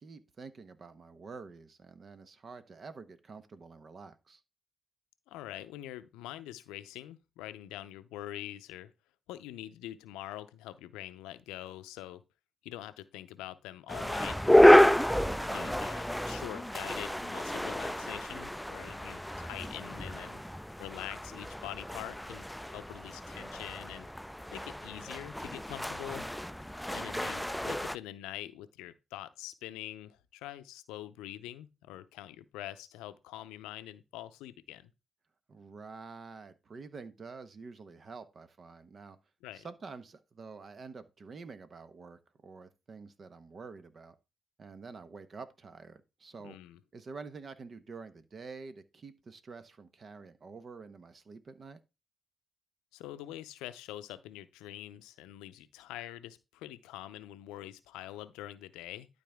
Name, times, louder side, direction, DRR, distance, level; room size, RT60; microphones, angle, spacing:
voice 1, 0.0-4.4 15.1-15.8 26.9-27.3 35.5-39.2 39.5-44.2 44.6-46.6 46.9-51.8, right 4 dB, 55° right, 1.0 m, -48 dB
voice 2, 5.3-8.9 9.3-12.2 12.6-14.5 15.5-20.4 20.8-24.1 24.5-26.3 26.9-34.9 39.4-39.7 46.4-46.8 52.9-59.1, left 14 dB, 85° left, 0.5 m, -44 dB
sound 1, 13.9-28.0, left 1 dB, 5° left, 0.3 m, -28 dB
12.0 x 4.1 x 3.5 m
hypercardioid pair, 40°, 0 cm